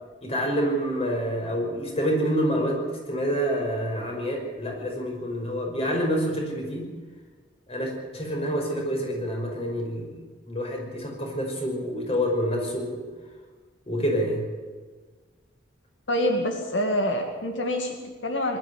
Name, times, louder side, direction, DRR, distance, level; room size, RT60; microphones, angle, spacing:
voice 1, 0.2-6.9 7.7-10.2 10.5-13.0 13.9-14.5, equal, 35° left, 1 dB, 5.6 m, -27 dB
voice 2, 16.1-18.6, left 1 dB, 90° left, 4 dB, 2.3 m, -26 dB
21.5 x 12.5 x 9.9 m, 1.4 s
head